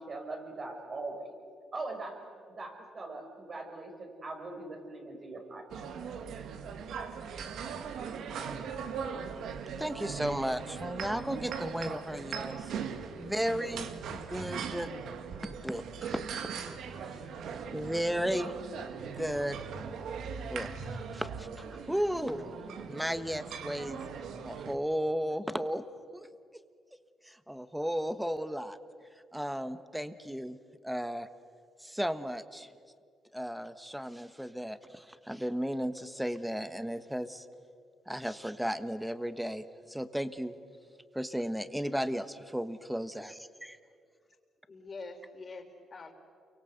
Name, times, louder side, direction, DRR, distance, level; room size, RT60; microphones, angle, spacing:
voice 1, 0.0-1.3 1.7-2.2 2.6-5.9, right 2 dB, 40° right, 3 dB, 5.7 m, -41 dB
sound 1, 5.7-24.7, right 6 dB, 75° right, 1.8 m, -40 dB
voice 2, 9.8-12.7 13.2-14.9 15.4-16.2 17.7-18.5 19.2-19.6 20.3-22.4 22.8-24.0 24.4-25.8 26.1-26.3 27.2-28.8 29.3-30.6 30.8-31.3 31.8-32.7 33.3-37.5 38.1-40.5 41.1-43.8, equal, 5° right, 12 dB, 1.3 m, -34 dB
voice 3, 44.7-46.1, left 3 dB, 35° left, 4 dB, 3.8 m, -45 dB
29.0 x 24.0 x 8.0 m, 2.2 s
cardioid pair, 90°, 0 cm